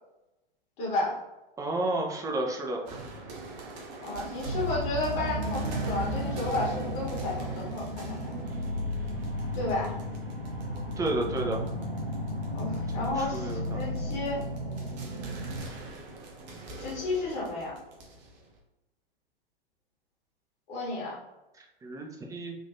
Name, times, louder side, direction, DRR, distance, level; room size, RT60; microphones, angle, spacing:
voice 1, 0.8-1.1 4.0-8.2 9.5-10.0 12.5-14.4 16.8-17.7 20.7-21.1, left 2 dB, 45° left, -5 dB, 1.4 m, -32 dB
voice 2, 1.6-2.8 11.0-11.6 13.0-13.8 21.6-22.6, right 2 dB, 10° right, 1 dB, 0.4 m, -31 dB
sound 1, 2.9-18.6, right 2 dB, 45° right, 0.9 m, -45 dB
sound 2, 4.4-15.6, equal, 80° right, 1.1 m, -34 dB
3.6 x 2.5 x 2.6 m, 0.99 s
figure-of-eight pair, 95°, 29 cm